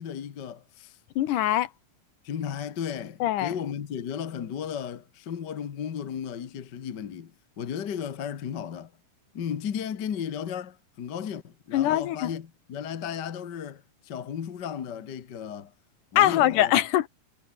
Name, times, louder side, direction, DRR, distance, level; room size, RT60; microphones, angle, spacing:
voice 1, 0.0-1.0 2.2-8.9 9.3-15.7 16.1-16.7, left 8 dB, 50° left, 1.3 m, -35 dB
voice 2, 1.2-1.7 3.2-3.5 11.7-12.3 16.2-17.1, left 13 dB, 75° left, 2.6 m, -22 dB
omnidirectional pair, 3.9 m